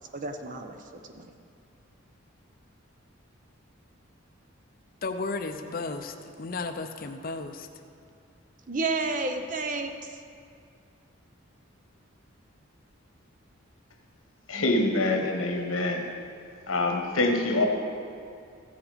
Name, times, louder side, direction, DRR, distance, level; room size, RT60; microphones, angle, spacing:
voice 1, 0.1-1.3 8.7-10.2, right 3 dB, 40° right, 6 dB, 0.7 m, -31 dB
voice 2, 5.0-7.7, left 3 dB, 45° left, 6 dB, 0.6 m, -34 dB
voice 3, 14.5-16.1 16.7-17.7, left 2 dB, 90° left, 3 dB, 1.3 m, -25 dB
15.0 x 7.2 x 5.1 m, 2.3 s
head